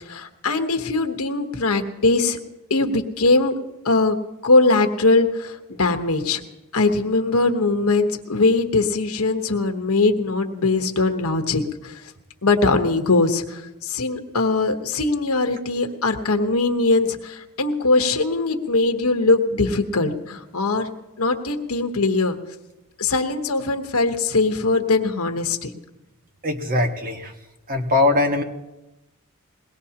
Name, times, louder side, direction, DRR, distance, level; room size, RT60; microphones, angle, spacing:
voice 1, 0.1-2.4 2.7-3.5 3.8-4.2 4.4-6.4 6.7-11.9 12.4-20.9 21.2-22.4 23.0-25.7, left 3 dB, 80° left, 5 dB, 1.2 m, -21 dB
voice 2, 26.4-27.3 27.7-28.4, left 2 dB, 40° right, 3 dB, 1.5 m, -21 dB
21.5 x 18.5 x 2.9 m, 1.0 s
head